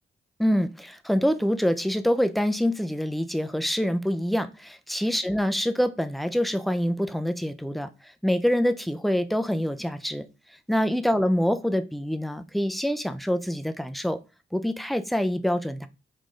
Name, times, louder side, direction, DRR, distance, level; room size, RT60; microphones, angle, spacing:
voice 1, 0.4-10.2 10.7-14.2 14.5-15.9, equal, ahead, 0.3 m, -25 dB
3.6 x 2.5 x 3.1 m
cardioid pair, 70°, 20 cm